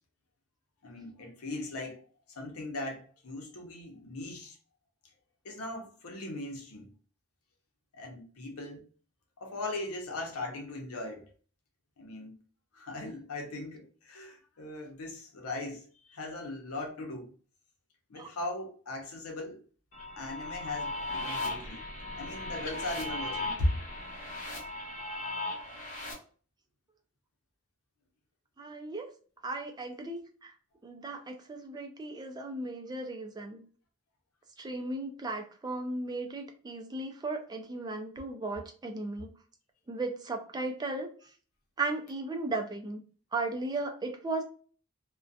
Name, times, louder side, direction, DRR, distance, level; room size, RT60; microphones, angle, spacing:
voice 1, 0.8-4.6 5.4-6.9 7.9-8.8 9.4-11.3 12.0-12.3 12.7-17.3 18.1-19.6 20.2-21.9 22.2-23.7, left 2 dB, 90° left, 0.7 m, -38 dB
sound 1, 19.9-26.1, left 2 dB, 40° left, 0.8 m, -37 dB
voice 2, 28.6-29.1 29.4-30.5 30.8-33.6 34.6-39.3 39.9-41.1 41.8-43.0 43.3-44.4, right 2 dB, 20° right, 0.3 m, -36 dB
2.4 x 2.1 x 2.6 m
head